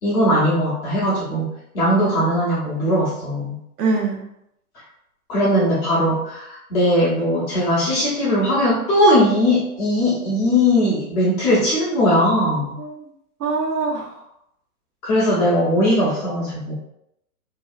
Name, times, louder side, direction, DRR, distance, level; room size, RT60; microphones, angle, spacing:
voice 1, 0.0-3.6 5.3-12.8 15.0-16.7, equal, 15° left, -9 dB, 0.6 m, -19 dB
voice 2, 3.8-4.2 12.8-13.0 13.4-14.2, right 3 dB, 80° right, 0 dB, 0.9 m, -23 dB
2.7 x 2.3 x 2.4 m, 0.78 s
hypercardioid pair, 145°, 46 cm